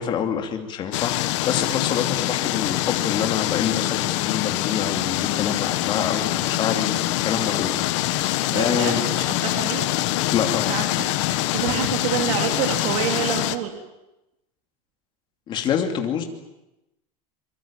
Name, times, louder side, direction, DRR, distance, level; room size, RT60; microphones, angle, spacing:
voice 1, 0.0-9.0 10.3-10.7 15.5-16.2, left 8 dB, 25° left, 4 dB, 2.7 m, -26 dB
sound 1, 0.9-13.6, left 16 dB, 55° left, 1.5 m, -24 dB
voice 2, 8.5-9.9 10.7-13.7, right 9 dB, 65° right, 4 dB, 3.2 m, -28 dB
24.5 x 24.0 x 8.9 m, 0.93 s
supercardioid pair, 175°, 18 cm